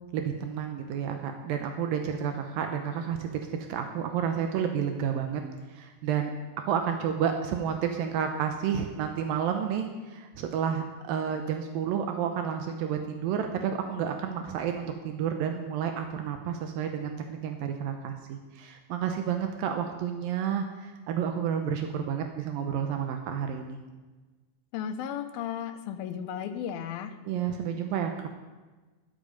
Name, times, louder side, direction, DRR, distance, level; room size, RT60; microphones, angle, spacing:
voice 1, 0.1-3.4 3.7-5.4 5.7-6.3 6.6-23.8 27.3-28.3, right 8 dB, 85° right, 5 dB, 2.6 m, -30 dB
voice 2, 24.7-27.2, left 9 dB, 85° left, 9 dB, 2.6 m, -34 dB
12.5 x 11.0 x 5.2 m, 1.2 s
omnidirectional pair, 4.1 m